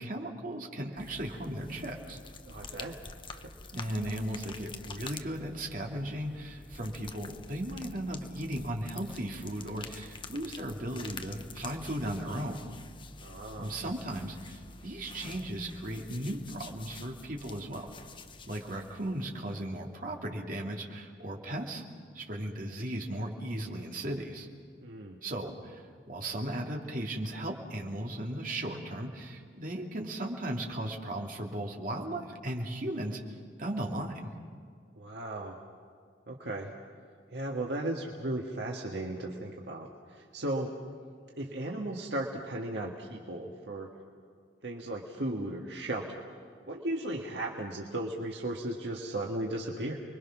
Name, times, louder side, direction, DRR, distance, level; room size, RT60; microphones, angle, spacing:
voice 1, 0.0-2.2 3.7-12.7 13.5-17.9 18.5-21.8 22.1-24.5 25.2-34.3, right 1 dB, 50° right, 0 dB, 2.7 m, -36 dB
sound 1, 1.0-19.9, left 3 dB, 30° left, 0.9 m, -47 dB
voice 2, 2.5-3.0 3.3-3.6 13.2-13.8 24.8-25.2 35.0-35.6 36.3-36.7 37.3-40.8 41.4-43.9 44.6-46.2 46.7-50.0, right 1 dB, 70° right, 0 dB, 1.7 m, -36 dB
30.0 x 22.5 x 6.1 m, 2.2 s
head